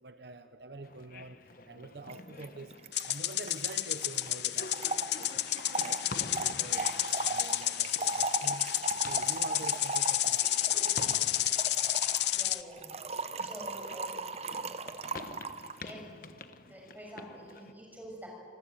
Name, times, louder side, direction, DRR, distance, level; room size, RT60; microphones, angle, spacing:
voice 1, 0.0-1.4 1.7-2.7 3.0-5.5 5.8-6.0 6.3-6.9 7.2-8.6 9.1-10.4 10.7-11.0, right 2 dB, 65° right, 9 dB, 1.0 m, -46 dB
sound 1, 0.8-17.7, left 3 dB, 50° left, 1.1 m, -48 dB
Trickle dribble / Fill (with liquid), 2.1-2.2 2.4-2.5 2.7-15.8, right 3 dB, 35° right, 0.8 m, -38 dB
sound 2, 2.9-12.6, left 14 dB, 70° left, 0.7 m, -31 dB
voice 2, 12.3-12.9 13.4-14.3 15.8-16.1 16.7-18.3, right 1 dB, 10° right, -1 dB, 6.5 m, -47 dB
26.5 x 19.5 x 9.3 m, 2.2 s
head